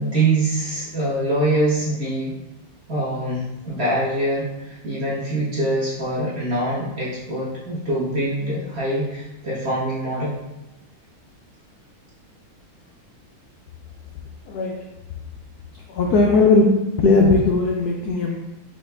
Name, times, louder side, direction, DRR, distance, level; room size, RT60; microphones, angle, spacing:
voice 1, 0.0-2.3 2.9-10.4, right 1 dB, 35° right, -8 dB, 1.3 m, -24 dB
voice 2, 14.5-14.8 15.9-18.4, left 3 dB, 80° left, 0 dB, 0.8 m, -18 dB
5.4 x 2.9 x 3.3 m, 0.95 s
omnidirectional pair, 2.2 m